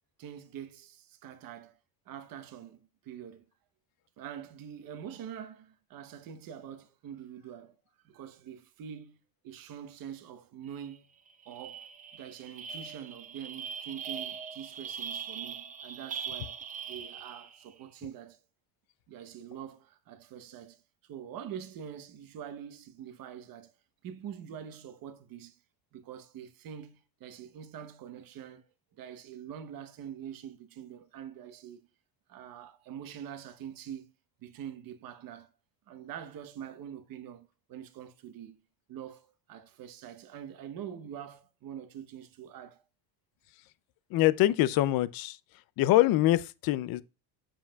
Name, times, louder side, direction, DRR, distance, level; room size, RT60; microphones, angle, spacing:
voice 1, 0.2-1.8 2.1-3.5 4.2-7.8 8.0-11.1 11.4-16.6 16.9-18.4 19.1-23.7 24.0-25.6 25.9-28.7 28.9-31.9 32.3-34.1 34.4-35.5 35.9-38.6 38.9-42.8, right 9 dB, 45° right, 1.0 m, -45 dB
sound 1, 10.8-11.0 11.3-17.7, right 7 dB, 20° right, 0.3 m, -41 dB
voice 2, 44.1-45.4 45.8-47.0, left 15 dB, 50° left, 0.5 m, -24 dB
7.6 x 7.1 x 2.3 m
cardioid pair, 155°, 47 cm